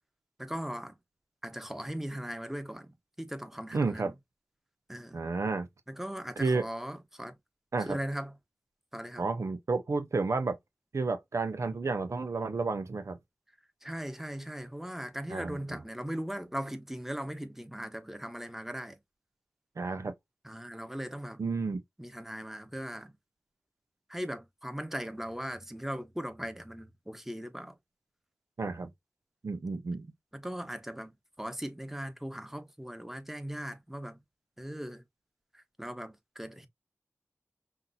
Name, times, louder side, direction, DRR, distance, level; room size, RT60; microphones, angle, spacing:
voice 1, 0.4-1.0 1.4-4.1 4.9-5.2 5.9-7.4 7.8-8.3 8.9-9.3 13.8-19.0 20.4-21.4 22.0-23.2 24.1-27.8 30.3-34.2 34.6-35.0 35.5-36.7, equal, 5° right, 1.0 m, -39 dB
voice 2, 3.7-4.1 5.1-5.7 6.4-6.6 7.7-8.0 9.2-10.6 10.9-13.2 15.3-15.8 19.8-20.1 21.4-21.8 28.6-28.9 29.4-30.1, right 3 dB, 90° right, 0.7 m, -31 dB
5.8 x 2.7 x 2.7 m
wide cardioid pair, 45°, 5 cm